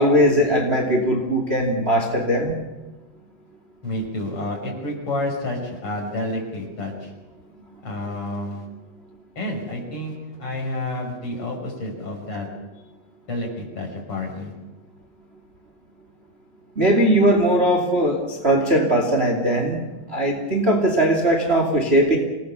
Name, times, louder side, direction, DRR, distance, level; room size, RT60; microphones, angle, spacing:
voice 1, 0.0-2.5 16.8-22.2, right 1 dB, 20° right, 2 dB, 1.7 m, -19 dB
voice 2, 3.8-7.1 7.8-8.7 9.4-12.5 13.3-14.5, left 1 dB, 30° left, 0 dB, 6.3 m, -29 dB
27.5 x 19.0 x 7.0 m, 1.2 s
omnidirectional pair, 5.4 m